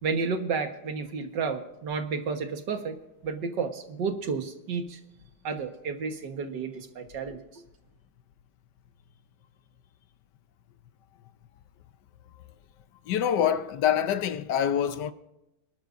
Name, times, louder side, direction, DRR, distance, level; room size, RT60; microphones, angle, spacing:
voice 1, 0.0-3.0 3.2-5.0 5.4-7.6, right 5 dB, 60° right, 1.9 m, -31 dB
voice 2, 13.1-15.1, left 9 dB, 65° left, 1.2 m, -25 dB
27.0 x 12.0 x 2.6 m
omnidirectional pair, 2.2 m